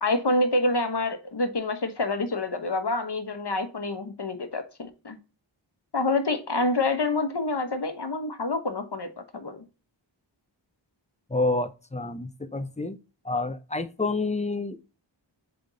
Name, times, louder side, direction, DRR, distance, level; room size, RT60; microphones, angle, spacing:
voice 1, 0.0-5.2 5.9-9.6, left 2 dB, 55° left, 1.2 m, -27 dB
voice 2, 11.3-13.0 13.2-14.9, left 3 dB, 15° left, 0.7 m, -29 dB
8.1 x 3.5 x 3.9 m
wide cardioid pair, 55°, 47 cm